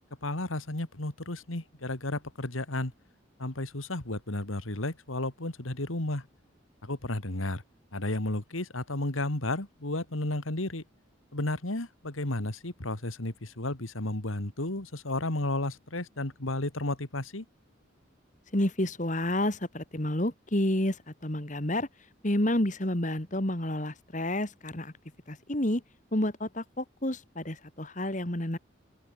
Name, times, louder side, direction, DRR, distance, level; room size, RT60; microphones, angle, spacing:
voice 1, 0.2-2.9 3.4-6.2 6.8-7.6 7.9-10.8 11.3-17.4, left 2 dB, 85° left, 2.7 m, -33 dB
voice 2, 18.5-21.9 22.2-24.9 25.3-25.8 26.1-28.6, left 1 dB, 40° left, 2.5 m, -29 dB
open air
head